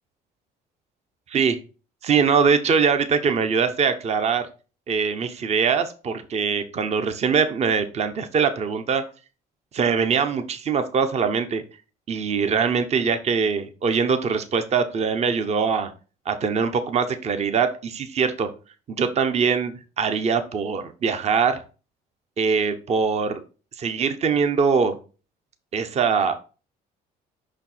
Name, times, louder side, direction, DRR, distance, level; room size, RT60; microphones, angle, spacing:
voice 1, 1.3-1.6 2.0-4.5 4.9-9.0 9.7-11.6 12.1-15.9 16.3-18.5 18.9-21.6 22.4-23.4 23.8-25.0 25.7-26.4, right 6 dB, 40° right, 9 dB, 0.8 m, -22 dB
5.5 x 4.4 x 4.3 m, 0.34 s
cardioid pair, 110°, 17 cm